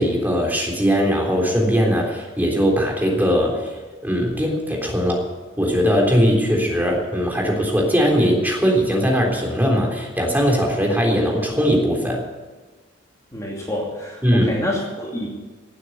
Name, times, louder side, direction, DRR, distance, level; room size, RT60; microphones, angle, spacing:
voice 1, 0.0-3.8 4.0-5.2 5.6-12.2 14.2-14.5, equal, 10° right, 0 dB, 3.6 m, -20 dB
voice 2, 13.3-15.3, left 1 dB, 15° left, -3 dB, 2.6 m, -27 dB
17.0 x 8.5 x 8.2 m, 1.3 s
head